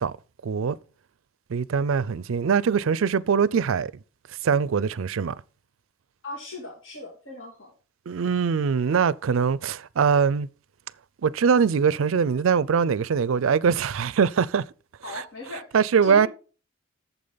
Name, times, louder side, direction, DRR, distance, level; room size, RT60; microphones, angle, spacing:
voice 1, 0.4-0.8 1.5-3.9 4.4-5.4 8.1-10.5 11.2-14.6 15.7-16.3, right 6 dB, 70° right, 0.4 m, -22 dB
voice 2, 6.2-7.7 15.0-16.3, left 2 dB, 65° left, 2.4 m, -39 dB
8.6 x 7.2 x 3.9 m
head